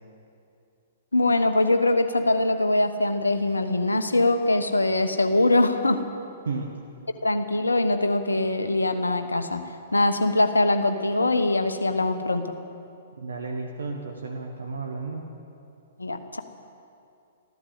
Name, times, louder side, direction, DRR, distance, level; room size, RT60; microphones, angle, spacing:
voice 1, 1.1-6.0 7.2-9.6 9.9-12.5 16.0-16.4, left 2 dB, 85° left, 8 dB, 1.1 m, -22 dB
voice 2, 6.4-6.8 13.2-15.3, right 4 dB, 70° right, 2 dB, 1.5 m, -33 dB
14.0 x 12.0 x 8.3 m, 2.6 s
figure-of-eight pair, 115°, 0 cm